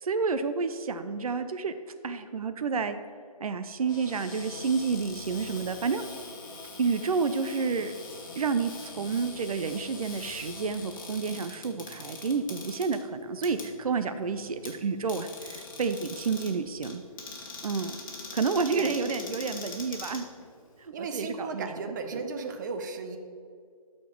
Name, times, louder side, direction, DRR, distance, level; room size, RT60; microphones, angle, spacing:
voice 1, 0.0-1.7 2.0-3.0 3.4-6.1 6.8-7.9 8.4-17.0 17.6-18.0 18.3-20.3 20.8-22.2, right 5 dB, 70° right, 10 dB, 0.6 m, -30 dB
Cupboard open or close, 3.8-20.9, left 3 dB, 35° left, 1.5 m, -43 dB
voice 2, 18.7-19.2 20.9-23.2, right 4 dB, 30° right, 6 dB, 0.7 m, -35 dB
12.5 x 4.4 x 4.6 m, 2.3 s
hypercardioid pair, 155°, 19 cm